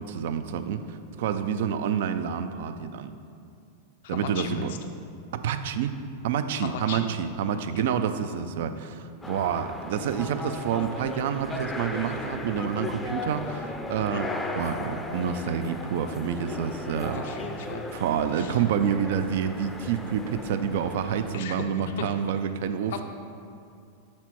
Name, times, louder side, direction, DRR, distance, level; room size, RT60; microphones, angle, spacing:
voice 1, 0.0-3.1 4.1-4.7 5.3-6.0 6.2-17.2 17.9-23.0, right 8 dB, 70° right, 9 dB, 0.4 m, -28 dB
voice 2, 4.0-4.8 6.6-7.1 7.5-7.9 14.0-14.2 17.1-17.9 18.3-18.6 21.3-22.1 22.9-23.0, left 7 dB, 70° left, 5 dB, 0.4 m, -37 dB
sound 1, 9.2-21.4, left 2 dB, 10° left, 0.4 m, -36 dB
6.1 x 4.3 x 4.5 m, 2.4 s
hypercardioid pair, 115°, 0 cm